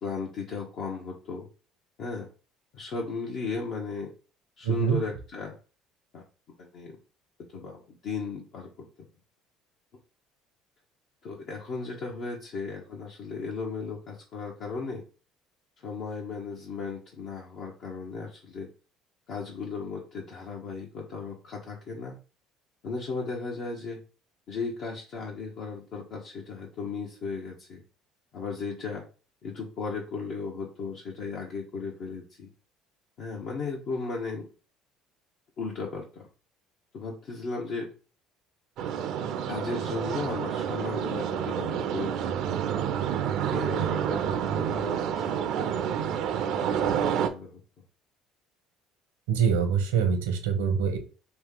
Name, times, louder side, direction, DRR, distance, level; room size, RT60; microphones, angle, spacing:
voice 1, 0.0-1.5 2.0-2.3 2.7-4.1 4.6-5.5 6.1-6.2 6.6-7.0 7.5-8.9 11.2-15.0 15.8-18.7 19.3-22.2 22.8-24.0 24.5-27.8 28.3-29.1 29.4-32.5 33.2-34.5 35.6-36.3 36.9-37.9 39.5-42.9 43.5-45.8 46.3-47.6, left 4 dB, 60° left, -2 dB, 0.8 m, -36 dB
voice 2, 4.6-5.0 49.3-51.0, right 7 dB, 85° right, 7 dB, 0.8 m, -24 dB
sound 1, 38.8-47.3, right 8 dB, 65° right, 0.4 m, -29 dB
3.1 x 2.8 x 3.7 m, 0.37 s
hypercardioid pair, 70°, 0 cm